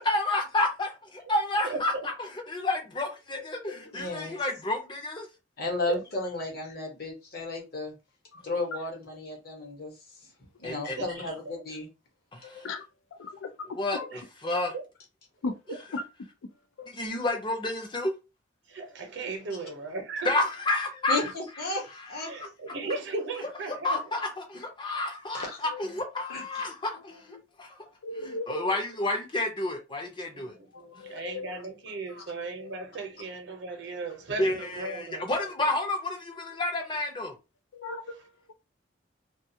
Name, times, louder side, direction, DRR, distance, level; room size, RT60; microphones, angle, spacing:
voice 1, 0.0-5.3 10.6-11.0 12.3-12.6 13.7-14.7 16.9-18.1 20.2-21.3 21.9-22.5 23.7-27.8 28.2-30.5 34.4-37.3, left 2 dB, 25° left, 0.6 m, -30 dB
voice 2, 1.6-2.1 5.9-6.0 11.0-11.6 14.1-14.8 15.7-15.8 18.7-20.3 22.3-24.0 30.4-35.3, right 3 dB, 60° right, 0.7 m, -36 dB
voice 3, 3.9-4.4 5.6-7.9 8.4-9.9 10.6-11.9 21.1-22.3 22.8-22.9 25.3-25.6 26.3-26.4 32.1-32.2, left 2 dB, 50° left, 0.9 m, -34 dB
voice 4, 12.4-12.8 13.1-14.1 15.4-15.5 15.9-16.0 16.8-16.9 25.7-25.8 27.3-27.4 28.0-28.7 30.7-31.5 32.6-32.7 37.7-38.1 38.5-38.6, left 3 dB, 90° left, 0.4 m, -37 dB
2.3 x 2.3 x 2.7 m
head